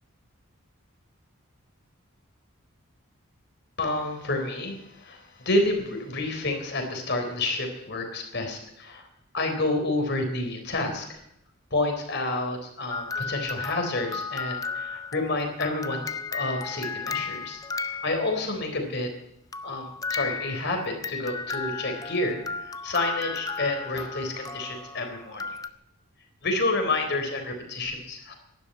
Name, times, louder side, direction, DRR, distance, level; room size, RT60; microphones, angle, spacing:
voice 1, 3.8-9.1 9.3-11.2 11.7-17.6 18.0-19.1 19.6-25.6 26.4-28.3, left 2 dB, 50° left, 4 dB, 3.7 m, -29 dB
sound 1, 12.9-18.7 19.5-25.7, left 4 dB, 15° left, 0.6 m, -34 dB
12.0 x 11.0 x 9.6 m, 0.79 s
head